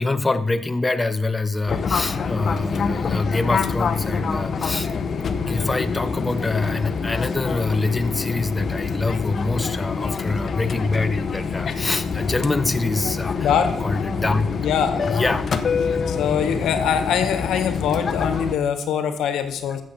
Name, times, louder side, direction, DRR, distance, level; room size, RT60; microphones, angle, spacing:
voice 1, 0.0-4.9 5.5-13.5 13.8-14.5 15.1-15.5 15.9-16.1, left 3 dB, 15° left, 9 dB, 0.6 m, -25 dB
Fixed-wing aircraft airplane, 1.7-18.5, left 5 dB, 50° left, 0.8 m, -26 dB
voice 2, 13.4-13.8 14.6-15.2 16.1-19.8, left 8 dB, 80° left, 9 dB, 1.3 m, -23 dB
13.5 x 7.4 x 5.7 m, 0.76 s
cardioid pair, 90°, 0 cm